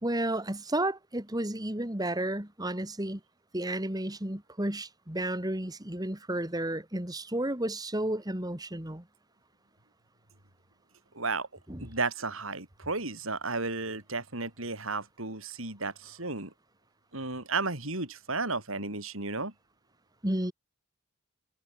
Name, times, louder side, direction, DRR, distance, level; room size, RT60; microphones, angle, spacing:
voice 1, 0.0-3.2 3.5-9.0 11.7-11.9 20.2-20.5, right 1 dB, 20° right, 2.4 m, -32 dB
voice 2, 11.1-11.5 11.8-16.5 17.1-19.5, right 3 dB, 70° right, 6.2 m, -33 dB
head